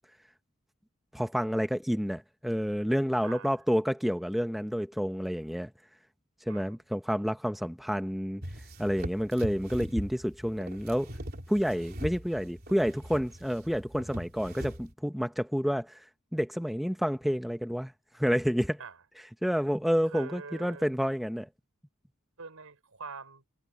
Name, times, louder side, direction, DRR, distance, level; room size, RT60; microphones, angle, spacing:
voice 1, 1.1-5.7 6.5-8.4 8.8-11.1 11.5-16.0 16.3-17.9 18.2-18.8 19.4-21.5, equal, ahead, 0.7 m, -29 dB
voice 2, 3.2-3.6 6.5-6.8 18.8-19.0 20.1-20.8 22.4-23.4, right 5 dB, 80° right, 3.5 m, -44 dB
sound 1, 8.4-14.9, equal, 45° right, 3.6 m, -41 dB
head